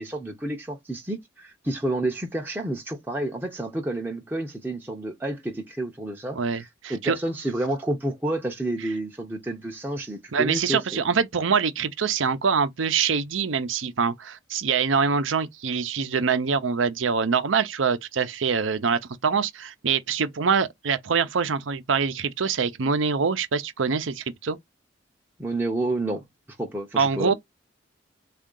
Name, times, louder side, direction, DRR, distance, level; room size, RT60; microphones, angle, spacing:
voice 1, 0.0-11.0 25.4-26.2 26.6-27.3, right 1 dB, 10° right, 0.5 m, -30 dB
voice 2, 6.3-7.2 10.3-24.6 27.0-27.3, right 5 dB, 90° right, 0.6 m, -24 dB
3.6 x 2.4 x 3.7 m
head